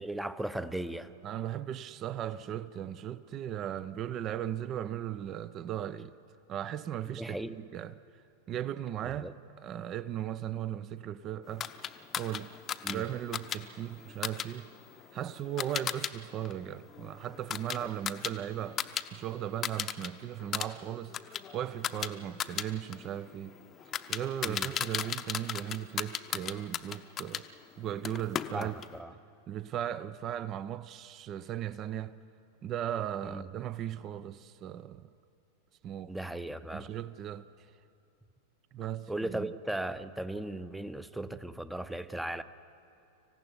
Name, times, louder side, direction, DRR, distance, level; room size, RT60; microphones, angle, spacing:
voice 1, 0.0-1.1 7.0-7.6 9.0-9.3 12.8-13.0 17.8-17.9 24.4-24.7 28.5-29.1 33.2-33.5 36.1-36.9 39.1-42.4, right 1 dB, 5° right, 0.8 m, -37 dB
voice 2, 1.2-6.1 6.5-8.0 8.5-9.3 9.6-11.7 12.2-12.5 12.9-14.7 15.1-18.8 19.1-23.6 24.1-27.5 27.8-28.8 29.5-32.2 32.6-35.0 35.8-36.1 36.7-37.4 38.7-39.5, right 11 dB, 35° right, 0.6 m, -37 dB
sound 1, 11.6-16.1 16.4-19.1 19.4-20.1 20.4-27.5 28.0-29.0, left 9 dB, 25° left, 0.8 m, -37 dB
25.5 x 15.5 x 9.6 m
figure-of-eight pair, 90°, 0 cm